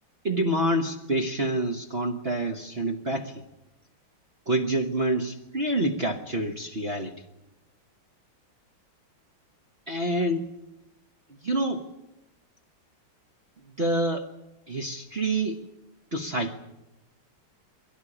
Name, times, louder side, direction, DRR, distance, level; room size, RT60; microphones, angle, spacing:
voice 1, 0.2-3.4 4.5-7.1 9.9-10.5 11.4-11.9 13.8-14.3 14.7-15.6 16.1-16.6, right 1 dB, 35° right, 3 dB, 1.2 m, -27 dB
22.0 x 17.0 x 9.9 m, 0.95 s
omnidirectional pair, 2.3 m